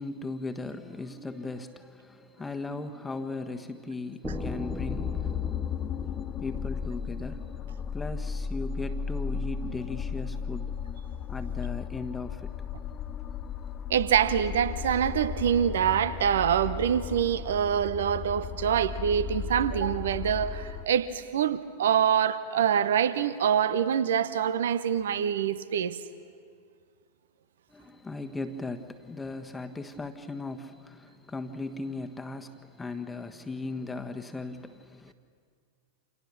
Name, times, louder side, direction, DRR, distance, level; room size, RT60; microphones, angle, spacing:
voice 1, 0.0-5.5 6.1-7.5 7.9-10.7 11.3-12.5 27.7-35.1, left 3 dB, 10° left, 1.4 m, -38 dB
sound 1, 4.2-20.9, left 7 dB, 30° left, 0.7 m, -35 dB
sound 2, 4.2-8.1, right 3 dB, 10° right, 1.4 m, -42 dB
voice 2, 13.9-26.0, right 9 dB, 60° right, 1.0 m, -25 dB
29.5 x 27.5 x 6.2 m
figure-of-eight pair, 90°, 0 cm